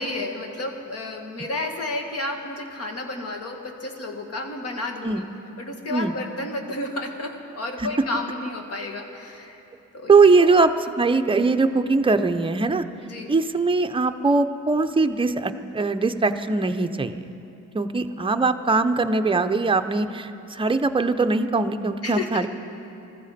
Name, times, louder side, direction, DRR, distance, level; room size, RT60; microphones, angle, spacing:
voice 1, 0.0-5.2 5.6-9.6 9.9-10.1 10.4-10.5 13.0-13.3 22.0-22.5, left 2 dB, 55° left, 3 dB, 1.8 m, -31 dB
voice 2, 10.1-10.7 11.0-12.8 13.3-17.2 17.7-22.5, right 3 dB, 15° right, 8 dB, 0.7 m, -21 dB
20.0 x 14.5 x 4.2 m, 2.8 s
cardioid pair, 90°, 30 cm